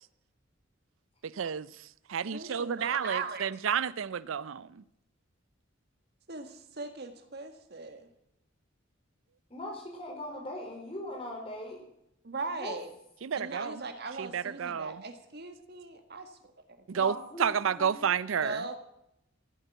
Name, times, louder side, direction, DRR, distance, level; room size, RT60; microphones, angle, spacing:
voice 1, 1.2-4.8 13.2-13.8 14.2-15.0 16.9-17.1 17.4-18.6, right 7 dB, 80° right, 0.5 m, -31 dB
voice 2, 2.3-3.8 6.3-8.1 12.2-12.9 13.3-16.9 18.4-18.8, right 3 dB, 55° right, 1.7 m, -39 dB
voice 3, 9.5-11.8 12.5-12.7 16.9-17.9, left 1 dB, 30° left, 4.3 m, -40 dB
15.5 x 9.1 x 9.2 m
head